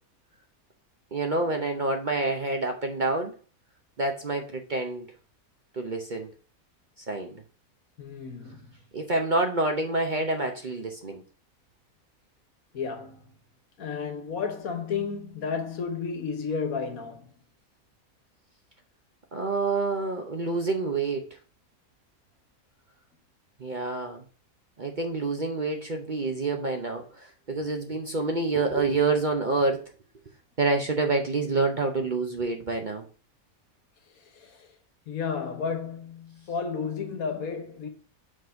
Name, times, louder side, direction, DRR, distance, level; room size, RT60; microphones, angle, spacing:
voice 1, 1.1-3.3 4.0-5.1 5.7-6.3 7.1-7.4 8.9-11.2 19.3-21.4 23.6-24.2 24.8-29.9 30.6-33.0, right 3 dB, 45° right, 0.7 m, -27 dB
voice 2, 8.0-8.7 12.7-13.3 13.8-17.3 34.1-34.7 35.1-37.9, left 5 dB, 75° left, 1.5 m, -32 dB
5.1 x 4.0 x 5.7 m
omnidirectional pair, 1.5 m